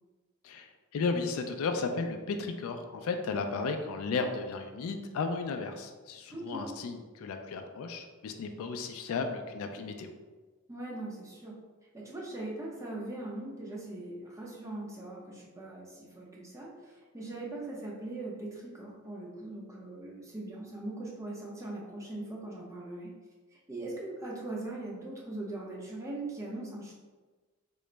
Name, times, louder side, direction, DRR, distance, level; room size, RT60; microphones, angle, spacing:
voice 1, 0.4-10.1, left 4 dB, 65° left, 6 dB, 0.3 m, -34 dB
voice 2, 6.3-6.7 10.7-11.6 11.9-23.1 23.5-26.9, right 2 dB, 15° right, -4 dB, 0.6 m, -40 dB
3.7 x 2.0 x 3.2 m, 1.3 s
head